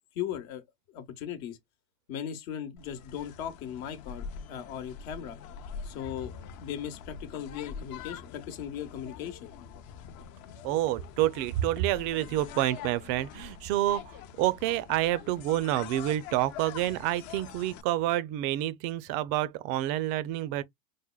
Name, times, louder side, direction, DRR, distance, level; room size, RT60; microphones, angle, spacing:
voice 1, 0.1-0.6 0.9-1.6 2.1-5.4 5.8-9.5, left 9 dB, 70° left, 0.9 m, -38 dB
sound 1, 2.8-17.8, left 7 dB, 45° left, 0.5 m, -45 dB
voice 2, 10.6-20.6, right 14 dB, 50° right, 0.5 m, -28 dB
4.9 x 2.1 x 2.2 m
supercardioid pair, 120°, 43 cm